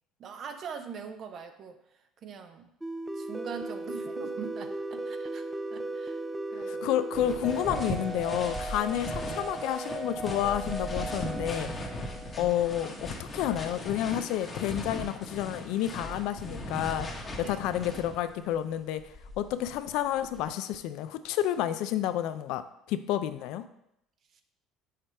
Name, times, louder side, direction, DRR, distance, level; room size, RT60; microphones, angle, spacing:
voice 1, 0.2-1.8 2.2-2.7 3.1-6.2 6.5-6.9 12.1-12.3 17.4-17.6 24.3-24.4, right 6 dB, 50° right, 7 dB, 0.6 m, -42 dB
sound 1, 2.8-13.1, right 2 dB, 5° right, 0.4 m, -37 dB
voice 2, 6.6-11.7 12.4-17.1 17.4-19.0 19.4-22.6 22.9-23.6, left 11 dB, 75° left, 11 dB, 0.4 m, -30 dB
sound 2, 7.1-18.4 19.0-20.5, left 1 dB, 30° left, 1.0 m, -38 dB
5.0 x 4.3 x 4.4 m, 0.78 s
supercardioid pair, 95°, 0 cm